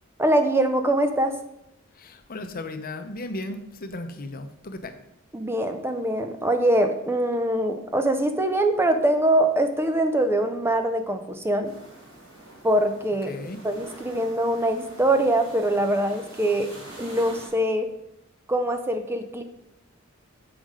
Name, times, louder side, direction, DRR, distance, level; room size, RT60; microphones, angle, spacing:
voice 1, 0.2-1.4 5.3-11.7 12.6-13.3 13.6-16.7 17.0-17.9 18.5-19.4, right 1 dB, 10° right, 7 dB, 0.4 m, -23 dB
voice 2, 1.9-5.0 13.2-13.6, left 2 dB, 45° left, 8 dB, 0.7 m, -35 dB
sound 1, 11.6-17.5, right 1 dB, 75° right, 3.2 m, -45 dB
7.2 x 5.1 x 5.0 m, 0.82 s
head